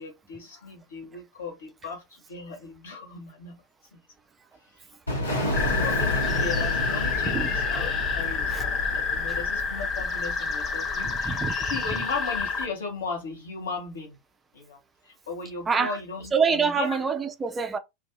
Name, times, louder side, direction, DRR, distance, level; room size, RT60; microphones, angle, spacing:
voice 1, 0.0-3.6 5.7-11.4 11.6-14.2 14.5-14.8 15.0-17.0, left 4 dB, 60° left, 1.6 m, -37 dB
sound 1, 5.1-9.7, equal, 80° left, 1.7 m, -30 dB
sound 2, 5.5-12.7, left 5 dB, 25° left, 0.8 m, -28 dB
voice 2, 11.0-11.5 15.7-16.0 16.3-17.8, right 5 dB, 15° right, 0.5 m, -26 dB
3.2 x 2.7 x 3.6 m
figure-of-eight pair, 90°, 0 cm